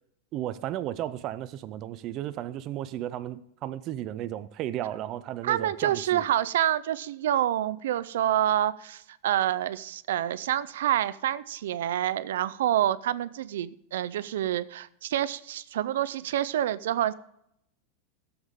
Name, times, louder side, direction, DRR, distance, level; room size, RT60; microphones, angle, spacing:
voice 1, 0.3-6.2, right 12 dB, 30° right, 0.4 m, -34 dB
voice 2, 5.4-17.1, right 11 dB, 85° right, 0.5 m, -27 dB
16.0 x 7.1 x 3.7 m
supercardioid pair, 170°, 0 cm